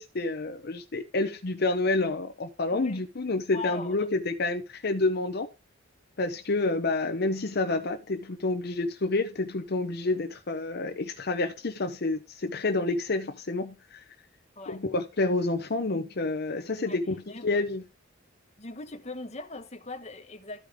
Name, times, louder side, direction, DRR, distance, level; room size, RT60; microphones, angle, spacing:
voice 1, 0.0-5.5 6.2-14.0 14.7-17.2 17.4-17.8, left 2 dB, 50° left, 0.7 m, -29 dB
voice 2, 2.7-3.0 3.5-4.1 14.6-14.8 16.8-17.0 17.3-17.5 18.6-20.6, left 3 dB, 35° left, 1.2 m, -39 dB
13.0 x 5.0 x 3.5 m
head